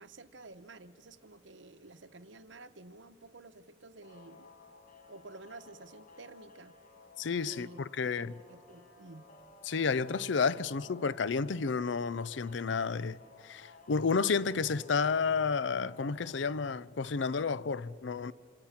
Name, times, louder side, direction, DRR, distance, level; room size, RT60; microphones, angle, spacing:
voice 1, 0.0-4.5 5.1-6.7 7.5-7.8 8.2-9.3, right 2 dB, 75° right, 1.0 m, -51 dB
sound 1, 4.0-16.8, left 3 dB, 45° left, 1.9 m, -56 dB
voice 2, 7.2-8.3 9.6-18.3, left 5 dB, 70° left, 0.5 m, -31 dB
27.0 x 27.0 x 5.9 m
head